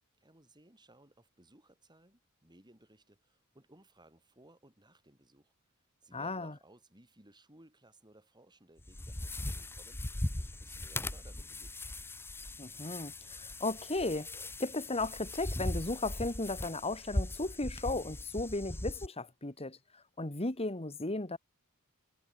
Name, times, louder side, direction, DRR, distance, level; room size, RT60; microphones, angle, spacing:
voice 1, 0.2-5.5 6.0-11.8, right 1 dB, 20° right, 7.5 m, -61 dB
voice 2, 6.1-6.5 12.6-19.8 20.2-21.4, left 2 dB, 30° left, 2.2 m, -35 dB
sound 1, 8.8-19.1, left 1 dB, 10° left, 0.8 m, -39 dB
head